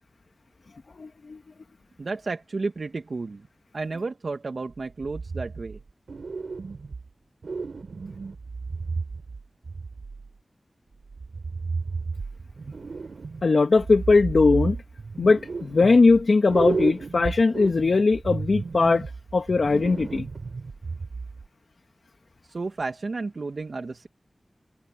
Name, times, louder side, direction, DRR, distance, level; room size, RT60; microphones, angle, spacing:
voice 1, 1.0-1.4 13.4-14.8 15.2-19.1 19.3-20.3, left 3 dB, 75° left, 2.2 m, -20 dB
voice 2, 2.0-3.5 3.7-5.8 22.4-24.1, right 3 dB, 70° right, 2.4 m, -32 dB
sound 1, 5.0-5.8 6.1-7.1 7.4-10.3 11.1-13.5 13.8-16.2 16.5-21.5, right 4 dB, 85° right, 5.5 m, -33 dB
wide cardioid pair, 70°, 0 cm